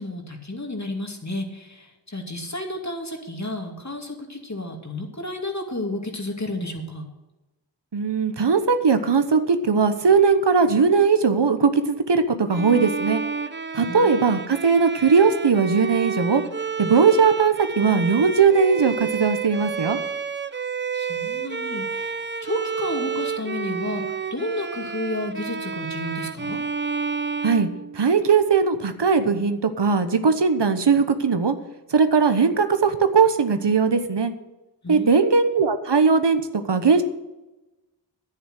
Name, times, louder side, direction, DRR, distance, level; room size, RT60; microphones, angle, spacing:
voice 1, 0.0-7.1 13.8-14.2 20.9-26.6 34.8-35.4, left 1 dB, 40° left, 2 dB, 2.5 m, -32 dB
voice 2, 7.9-13.2 13.7-16.4 16.8-20.0 27.4-27.7 27.9-31.5 31.9-34.3 34.9-36.4 36.7-37.0, right 5 dB, 75° right, 9 dB, 1.1 m, -19 dB
Bowed string instrument, 12.5-28.4, right 6 dB, 25° right, 0.6 m, -30 dB
10.5 x 9.4 x 6.4 m, 1.0 s
wide cardioid pair, 45°, 43 cm